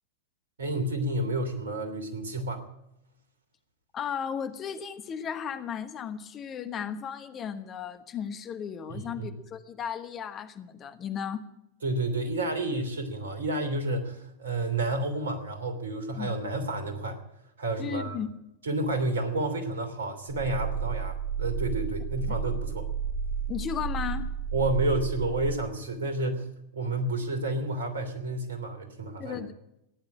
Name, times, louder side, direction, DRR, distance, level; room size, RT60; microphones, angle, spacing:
voice 1, 0.6-2.6 8.9-9.3 11.8-17.2 17.6-18.2 18.6-22.9 24.5-26.5 26.7-29.4, right 2 dB, 70° right, 8 dB, 3.0 m, -30 dB
voice 2, 3.9-11.5 16.2-16.3 17.8-18.4 22.3-22.4 23.5-24.3 29.2-29.5, left 8 dB, 30° left, 10 dB, 1.2 m, -35 dB
sound 1, 20.3-25.5, right 6 dB, 45° right, 3.3 m, -32 dB
15.5 x 10.5 x 8.6 m, 0.83 s
figure-of-eight pair, 90°, 0 cm